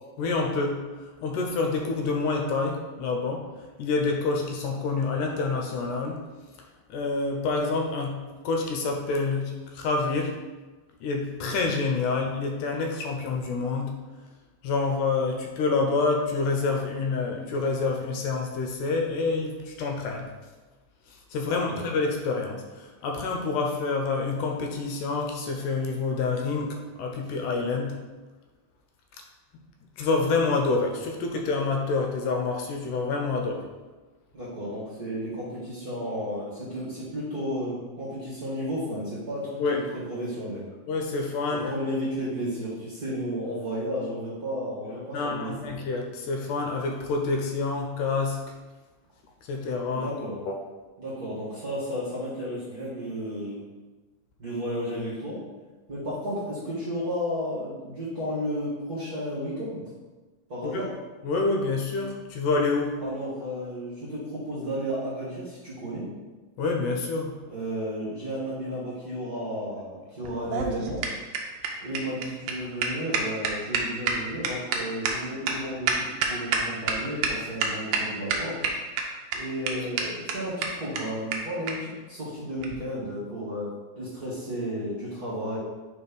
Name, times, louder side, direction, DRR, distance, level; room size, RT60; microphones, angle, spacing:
voice 1, 0.2-3.5 3.8-6.2 6.9-10.4 11.0-14.0 14.6-20.3 21.1-28.0 30.0-33.7 39.6-39.8 40.9-41.7 45.1-48.5 49.5-50.2 50.5-50.6 60.6-60.9 61.2-63.0 66.6-67.4, left 3 dB, 80° left, 2 dB, 2.2 m, -27 dB
voice 2, 21.4-21.8 34.3-40.7 41.5-45.7 49.9-50.4 51.0-53.6 54.4-55.4 55.9-59.8 60.5-60.9 63.0-66.1 67.5-71.0 71.8-78.6 79.3-83.7 84.0-85.6, equal, 40° right, -9 dB, 1.5 m, -33 dB
sound 1, 70.2-76.9 77.2-77.3 77.6-78.0 78.3-79.0 79.3-79.4 79.7-79.8 80.0-80.1 80.3-80.4 80.6-80.7 80.9-81.0 81.3-81.4 81.7-81.8 82.6-82.8, right 6 dB, 75° right, 1.5 m, -27 dB
4.7 x 4.2 x 5.2 m, 1.2 s
omnidirectional pair, 3.7 m